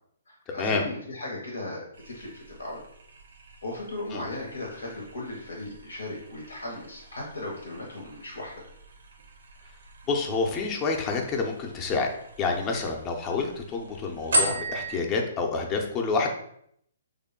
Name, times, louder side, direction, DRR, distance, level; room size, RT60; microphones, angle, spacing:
voice 1, 0.3-2.8 3.6-8.6, left 2 dB, 80° left, -2 dB, 0.8 m, -37 dB
sound 1, 1.9-15.0, right 1 dB, 75° right, 0.6 m, -37 dB
voice 2, 10.1-12.1 12.4-16.3, left 4 dB, 25° left, 2 dB, 0.6 m, -28 dB
3.4 x 2.2 x 3.7 m, 0.70 s
hypercardioid pair, 140°, 0 cm